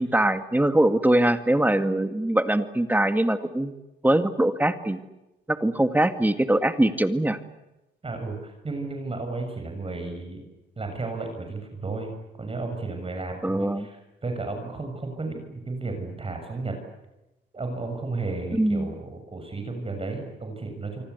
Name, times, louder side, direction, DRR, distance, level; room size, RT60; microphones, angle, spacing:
voice 1, 0.0-3.7 4.0-5.0 5.5-7.4 13.4-13.8 18.5-18.9, right 1 dB, 10° right, 9 dB, 2.0 m, -22 dB
voice 2, 8.0-10.5 10.8-16.8 17.5-21.0, right 3 dB, 30° right, 4 dB, 6.7 m, -33 dB
27.0 x 24.5 x 8.3 m, 0.96 s
cardioid pair, 90°, 20 cm